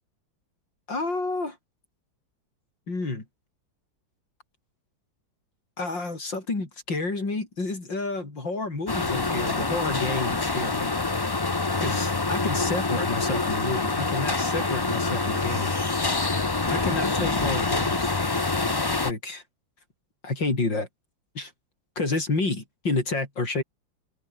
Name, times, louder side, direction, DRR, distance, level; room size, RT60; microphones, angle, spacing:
voice 1, 0.9-1.6 2.9-3.2 5.8-10.9 11.8-15.7 16.7-18.1 19.0-19.4 20.2-20.9 21.4-21.5 22.0-23.6, left 3 dB, 65° left, 5.8 m, -29 dB
sound 1, 8.9-19.1, left 3 dB, 35° left, 0.4 m, -26 dB
open air
omnidirectional pair, 2.1 m